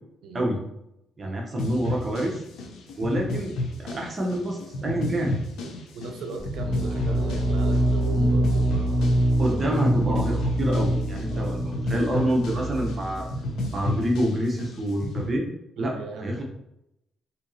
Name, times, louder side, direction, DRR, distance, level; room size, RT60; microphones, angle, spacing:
voice 1, 1.2-2.4 3.0-3.5 3.8-5.4 9.4-13.3 13.7-15.5 15.8-16.4, right 1 dB, 35° right, 0 dB, 0.8 m, -27 dB
sound 1, 1.6-15.3, left 1 dB, 85° left, 0.6 m, -33 dB
voice 2, 5.9-9.2 9.5-9.9 11.3-11.7 15.8-16.4, right 3 dB, 80° right, 5 dB, 0.5 m, -37 dB
sound 2, 6.4-14.0, right 1 dB, 15° left, 0.5 m, -25 dB
4.3 x 2.8 x 2.7 m, 0.83 s
cardioid pair, 90°, 0 cm